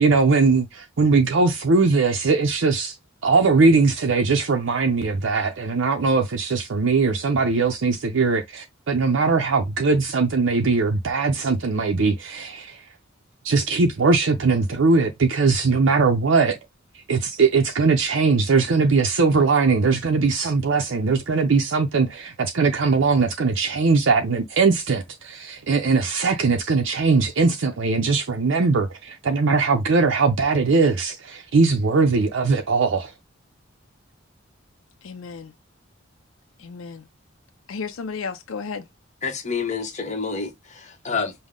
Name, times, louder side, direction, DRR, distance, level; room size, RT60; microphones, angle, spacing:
voice 1, 0.0-3.0 3.2-12.8 13.5-16.6 17.1-33.1, right 4 dB, 65° right, 0.6 m, -20 dB
voice 2, 35.0-35.5 36.6-37.1 37.7-38.9, left 5 dB, 75° left, 0.5 m, -33 dB
voice 3, 39.2-41.3, left 5 dB, 35° left, 1.1 m, -28 dB
5.4 x 2.1 x 3.6 m
head